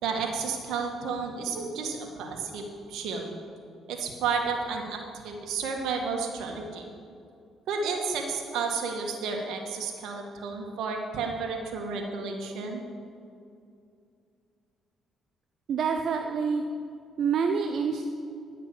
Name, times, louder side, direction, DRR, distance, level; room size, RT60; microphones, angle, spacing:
voice 1, 0.0-3.3 3.9-5.0 5.2-6.9 7.7-12.8, right 5 dB, 80° right, 2 dB, 1.8 m, -32 dB
voice 2, 15.7-16.6 17.2-18.0, right 6 dB, 60° right, 5 dB, 0.7 m, -27 dB
11.0 x 7.5 x 7.1 m, 2.4 s
supercardioid pair, 75°, 0 cm